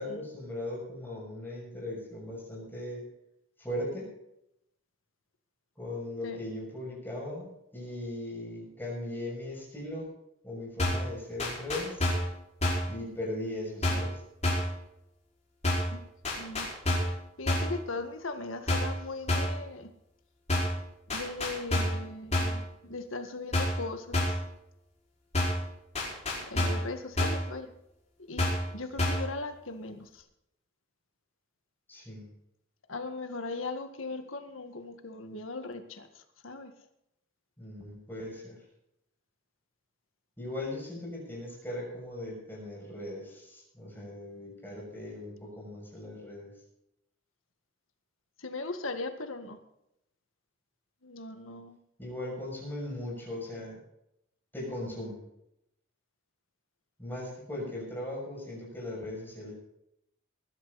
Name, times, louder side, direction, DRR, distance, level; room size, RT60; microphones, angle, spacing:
voice 1, 0.0-3.0 3.6-4.1 5.7-10.1 10.4-12.1 12.9-14.2 31.9-32.3 37.6-38.6 40.4-46.5 52.0-53.8 54.5-55.2 57.0-59.5, left 1 dB, 10° left, -4 dB, 6.8 m, -38 dB
sound 1, 10.8-11.1 11.4-12.3 12.6-12.9 13.8-14.1 14.4-14.8 15.6-16.0 16.2-17.2 17.5-17.8 18.7-19.0 19.3-19.6 20.5-20.8 21.1-22.0 22.3-22.6 23.5-23.9 24.1-24.5 25.3-25.7 26.0-26.9 27.2-27.5 28.4-28.7 29.0-29.3, left 1 dB, 35° left, 5.3 m, -28 dB
voice 2, 16.4-16.7 17.4-19.9 21.1-24.4 26.4-27.7 28.3-30.2 32.9-36.7 48.4-49.6 51.0-51.8, left 3 dB, 70° left, 7 dB, 1.8 m, -39 dB
20.5 x 12.0 x 4.2 m, 0.80 s
head